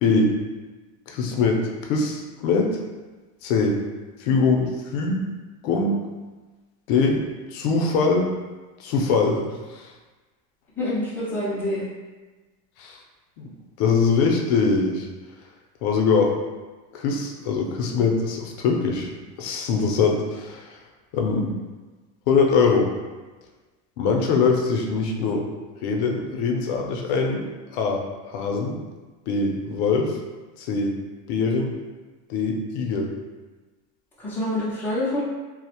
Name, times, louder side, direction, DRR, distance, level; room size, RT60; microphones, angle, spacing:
voice 1, 0.0-0.4 1.1-2.8 3.4-3.8 4.2-5.3 5.6-6.0 6.9-7.2 7.5-8.3 8.8-9.9 12.8-13.0 13.4-13.5 13.8-15.1 15.8-16.3 16.9-19.1 19.4-20.8 21.1-21.5 22.3-22.9 24.0-25.5 25.8-27.4 27.7-28.8 29.3-30.2 30.6-31.0 31.3-31.7 32.3-33.1, left 4 dB, 60° left, 1 dB, 0.5 m, -22 dB
voice 2, 10.8-11.8 21.3-21.5 34.2-35.2, left 1 dB, 5° left, -9 dB, 0.3 m, -26 dB
2.4 x 2.0 x 2.8 m, 1.2 s
cardioid pair, 160°, 37 cm